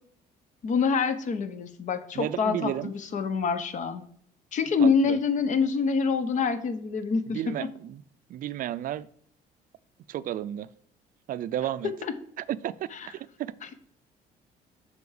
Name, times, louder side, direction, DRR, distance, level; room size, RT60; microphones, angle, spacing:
voice 1, 0.6-4.0 4.5-7.7 11.8-12.1 12.9-13.1, left 5 dB, 45° left, 0.9 m, -26 dB
voice 2, 2.1-2.9 4.8-5.2 7.3-8.0 8.3-9.1 10.1-10.7 11.3-11.9 12.4-13.5, right 12 dB, 55° right, 0.4 m, -32 dB
6.9 x 4.4 x 5.0 m
cardioid pair, 110°, 17 cm